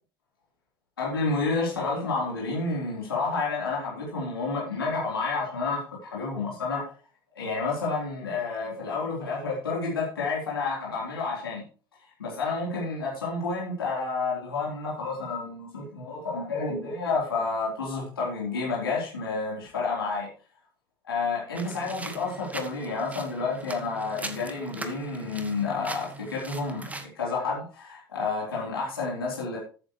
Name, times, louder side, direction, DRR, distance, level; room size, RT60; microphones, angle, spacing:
voice 1, 1.0-6.9 7.4-11.6 12.2-20.3 21.0-29.6, left 4 dB, 80° left, -5 dB, 3.9 m, -30 dB
sound 1, 21.6-27.1, right 2 dB, 10° right, 1.7 m, -40 dB
14.0 x 9.1 x 3.2 m, 0.39 s
figure-of-eight pair, 65°, 12 cm